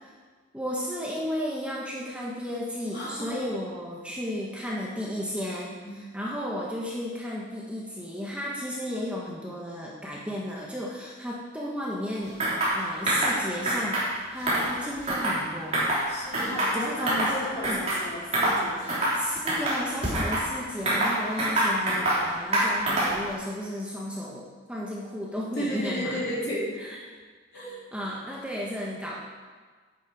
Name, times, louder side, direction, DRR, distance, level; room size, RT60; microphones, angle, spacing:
voice 1, 0.5-12.4 12.7-15.9 16.7-17.8 19.1-26.2 26.8-27.0 27.5-29.2, equal, 5° right, -4 dB, 1.2 m, -34 dB
voice 2, 2.9-3.4 5.8-5.9 16.1-19.0 25.6-26.7 27.5-27.7, equal, 55° left, -6 dB, 3.7 m, -33 dB
sound 1, 12.4-12.8 13.1-13.4 13.6-14.1 14.4-15.4 15.7-16.0 16.3-17.3 17.6-18.0 18.3-18.6 18.9-19.2 19.5-20.4 20.9-22.2 22.5-23.2, right 1 dB, 30° right, 3.5 m, -25 dB
11.0 x 10.0 x 4.9 m, 1.5 s
head